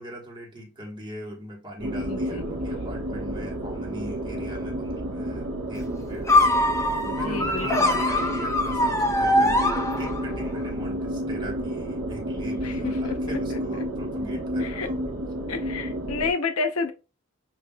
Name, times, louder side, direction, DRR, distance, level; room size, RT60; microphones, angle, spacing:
voice 1, 0.0-6.3 7.1-15.1, equal, 20° right, 1.3 m, -40 dB
sound 1, 1.8-16.3, equal, 60° right, 0.9 m, -31 dB
voice 2, 2.1-2.6 7.0-8.0 12.6-13.6 14.6-14.9 15.5-16.9, left 4 dB, 85° left, 0.7 m, -31 dB
sound 2, 6.3-10.4, left 1 dB, 15° left, 0.5 m, -22 dB
7.0 x 2.6 x 2.2 m
head